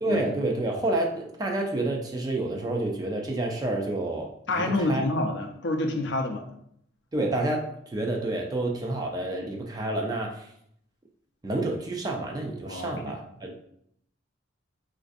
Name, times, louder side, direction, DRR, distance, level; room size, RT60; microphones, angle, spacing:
voice 1, 0.0-4.3 4.6-5.0 7.1-10.5 11.4-13.5, right 2 dB, 20° right, 1 dB, 0.3 m, -29 dB
voice 2, 4.5-6.5 12.7-12.9, left 2 dB, 55° left, 4 dB, 0.4 m, -27 dB
4.0 x 2.5 x 2.5 m, 0.71 s
head